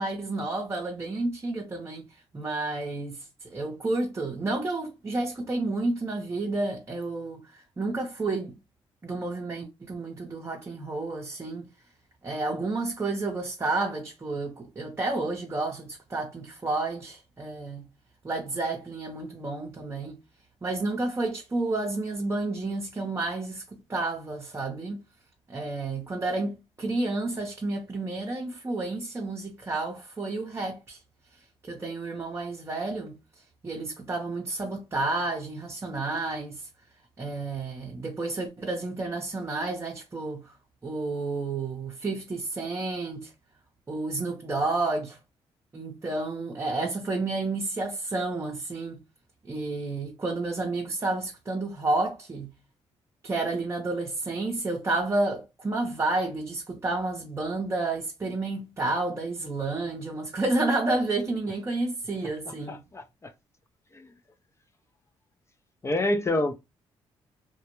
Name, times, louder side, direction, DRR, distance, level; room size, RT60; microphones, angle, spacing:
voice 1, 0.0-2.0 2.3-8.6 9.0-11.7 12.2-17.9 18.2-20.2 20.6-23.6 23.9-25.0 25.5-31.0 31.6-33.2 33.6-36.7 37.2-40.5 40.8-43.3 43.9-45.2 45.7-49.0 49.5-52.5 53.2-62.8, right 2 dB, 25° right, 0.6 m, -30 dB
voice 2, 62.7-63.3 63.9-64.1 65.8-66.5, left 1 dB, 25° left, 0.4 m, -27 dB
2.2 x 2.0 x 2.9 m
supercardioid pair, 65°, 11 cm